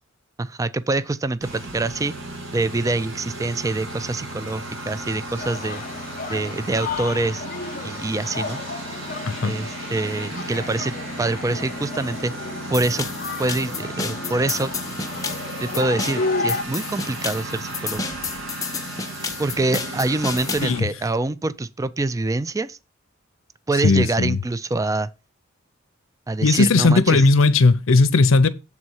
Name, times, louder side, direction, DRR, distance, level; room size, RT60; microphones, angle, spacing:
voice 1, 0.4-2.1 2.5-5.8 6.3-7.4 7.8-8.6 9.4-10.9 11.2-12.3 12.7-13.1 13.4-14.7 15.6-18.2 19.4-22.8 23.7-25.1 26.3-27.2, right 2 dB, 15° right, 0.3 m, -25 dB
Engine, 1.4-20.8, right 1 dB, 75° right, 2.6 m, -35 dB
sound 1, 5.4-16.6, left 3 dB, 45° left, 0.8 m, -32 dB
sound 2, 12.7-20.7, left 4 dB, 15° left, 0.8 m, -31 dB
voice 2, 23.8-24.4 26.4-28.5, left 3 dB, 80° left, 0.6 m, -17 dB
7.2 x 4.2 x 6.2 m
head